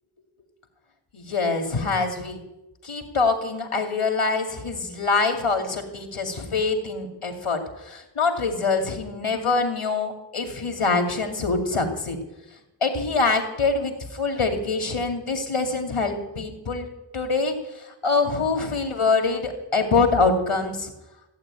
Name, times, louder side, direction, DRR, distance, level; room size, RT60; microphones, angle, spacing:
voice 1, 1.1-2.4 2.8-12.2 12.8-16.9 17.1-20.9, left 4 dB, 90° left, 4 dB, 2.6 m, -24 dB
15.5 x 8.9 x 8.9 m, 0.96 s
wide cardioid pair, 50°, 49 cm